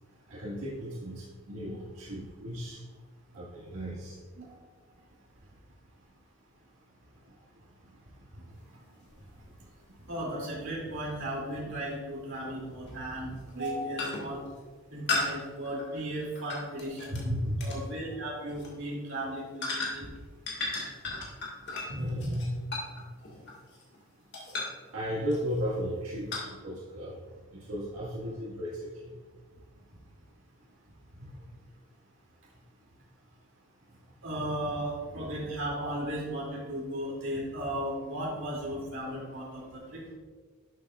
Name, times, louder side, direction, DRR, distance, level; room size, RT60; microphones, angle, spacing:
voice 1, 0.3-2.8 3.3-4.2 17.1-17.6 21.9-22.5 24.9-27.2 27.5-29.1 31.3-31.4 34.3-34.4, equal, 85° right, -6 dB, 1.8 m, -35 dB
sound 1, 9.0-9.1 11.6-11.7 12.9-13.1 13.5-13.7 14.0-14.4 15.1-17.2 17.6-17.8 18.5-18.7 19.6-20.2 20.5-24.0 24.3-24.8 25.3-25.6 26.3-26.5, left 3 dB, 50° left, 1.8 m, -35 dB
voice 2, 10.1-14.4 14.9-20.1 34.2-40.0, right 1 dB, 60° right, -4 dB, 2.6 m, -36 dB
11.0 x 7.2 x 2.4 m, 1.4 s
head